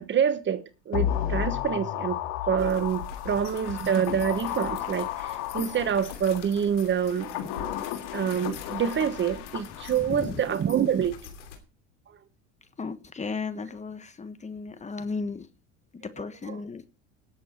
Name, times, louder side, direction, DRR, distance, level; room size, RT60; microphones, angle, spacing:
voice 1, 0.0-2.2 2.5-7.5 8.1-11.2 16.5-16.6, right 8 dB, 30° right, 1.2 m, -26 dB
sound 1, 0.9-6.4 7.0-10.2 10.5-10.6, left 11 dB, 65° left, 2.6 m, -33 dB
sound 2, 2.6-11.6, left 7 dB, 85° left, 3.0 m, -44 dB
voice 2, 10.1-10.4 12.8-15.5 15.9-16.8, left 4 dB, 20° left, 1.4 m, -35 dB
18.5 x 7.7 x 4.4 m
hypercardioid pair, 90°, 35 cm